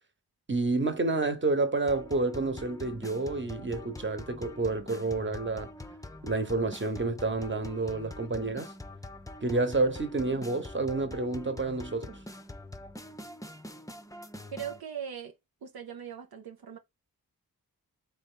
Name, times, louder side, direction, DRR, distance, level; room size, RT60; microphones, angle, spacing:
voice 1, 0.5-5.7 6.2-8.7 9.4-12.2, right 3 dB, 30° right, 1.2 m, -29 dB
sound 1, 1.9-14.8, left 1 dB, 10° left, 0.7 m, -45 dB
voice 2, 14.5-15.3 15.6-16.8, right 8 dB, 80° right, 0.8 m, -39 dB
3.7 x 3.4 x 3.8 m
cardioid pair, 50°, 37 cm